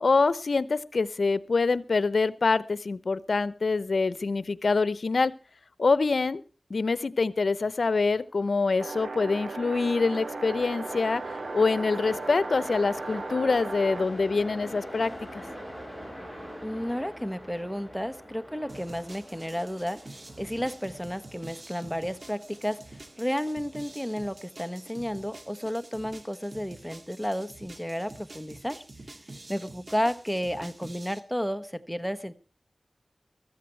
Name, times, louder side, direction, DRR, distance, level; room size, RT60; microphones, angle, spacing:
voice 1, 0.0-5.3 5.8-6.4 6.7-11.2 11.5-15.4, left 4 dB, 80° left, 18 dB, 0.7 m, -25 dB
Train, 8.3-25.5, equal, 20° right, 7.6 m, -44 dB
sound 1, 8.8-14.1, right 3 dB, 85° right, 0.9 m, -37 dB
voice 2, 16.6-20.0 20.4-28.8 29.5-32.3, equal, ahead, 10 dB, 1.2 m, -32 dB
sound 2, 18.7-31.2, right 2 dB, 50° right, 2.1 m, -47 dB
15.0 x 14.0 x 4.5 m, 0.32 s
wide cardioid pair, 60°, 0 cm